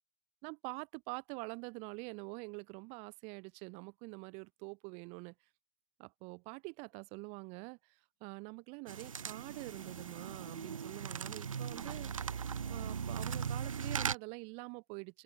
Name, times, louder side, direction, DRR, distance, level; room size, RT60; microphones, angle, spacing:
voice 1, 0.4-5.3 6.0-12.1 12.7-15.2, right 33 dB, 40° right, 7.7 m, -46 dB
sound 1, 8.9-14.1, right 7 dB, 75° right, 1.1 m, -39 dB
open air
figure-of-eight pair, 110°, 17 cm